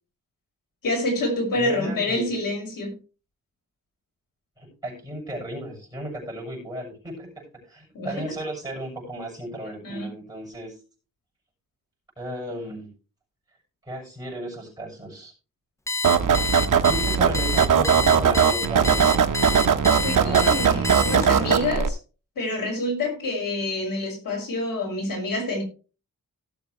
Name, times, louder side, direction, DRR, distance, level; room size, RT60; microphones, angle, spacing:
voice 1, 0.8-3.0 7.9-8.3 9.8-10.1 20.0-22.0 22.4-25.6, left 2 dB, 90° left, 1 dB, 5.8 m, -27 dB
voice 2, 1.6-2.3 4.6-10.8 12.2-12.9 13.9-15.3 16.9-19.1 20.2-20.7, right 1 dB, 10° right, -3 dB, 7.1 m, -35 dB
Alarm, 15.9-21.5, left 3 dB, 10° left, 0.7 m, -28 dB
sound 1, 16.0-21.9, right 7 dB, 70° right, 1.1 m, -20 dB
17.5 x 7.2 x 3.3 m, 0.34 s
wide cardioid pair, 160°, 33 cm